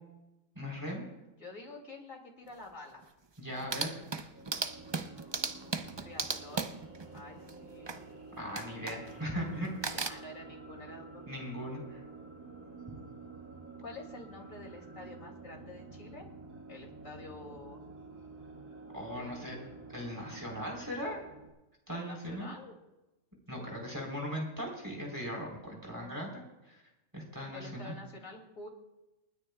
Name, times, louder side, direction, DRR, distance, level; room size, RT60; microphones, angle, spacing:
voice 1, 0.6-1.1 3.4-4.0 8.4-9.7 11.3-12.0 12.9-13.0 18.9-19.6 19.9-21.2 21.9-22.5 23.5-26.8 27.1-27.9, equal, 15° right, -1 dB, 3.7 m, -39 dB
voice 2, 1.2-3.1 6.0-6.7 7.1-8.0 9.9-11.2 13.8-16.3 16.7-17.8 19.1-19.7 20.6-20.8 21.9-22.8 23.5-23.7 25.7-26.2 27.5-28.7, left 2 dB, 80° left, 0 dB, 3.1 m, -48 dB
sound 1, 2.5-2.6 3.0-3.1 3.4-8.1 8.6-9.3 9.6-10.1, right 4 dB, 35° right, 0.4 m, -37 dB
sound 2, 4.2-21.5, right 3 dB, 70° right, 2.7 m, -50 dB
29.0 x 9.9 x 2.3 m, 0.99 s
omnidirectional pair, 1.4 m